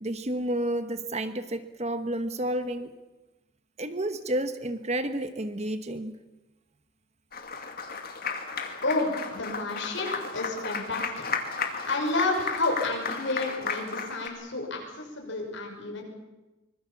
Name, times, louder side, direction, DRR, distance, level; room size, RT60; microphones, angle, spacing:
voice 1, 0.0-2.9 3.8-6.2, right 1 dB, 30° right, 10 dB, 1.1 m, -30 dB
Applause, 7.3-14.3, left 5 dB, 45° left, 2.4 m, -34 dB
voice 2, 8.8-11.4 11.8-16.0, left 2 dB, 60° left, 1 dB, 6.3 m, -30 dB
25.0 x 20.5 x 7.2 m, 1.1 s
head